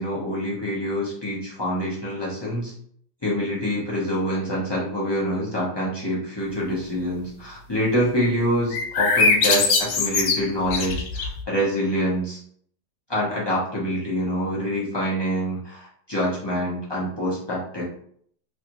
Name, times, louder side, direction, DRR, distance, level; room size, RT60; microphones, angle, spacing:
voice 1, 0.0-2.7 3.2-12.4 13.1-17.8, equal, 40° left, -7 dB, 0.3 m, -26 dB
sound 1, 8.7-11.4, left 4 dB, 70° left, 0.8 m, -21 dB
3.1 x 2.6 x 2.9 m, 0.62 s
omnidirectional pair, 1.9 m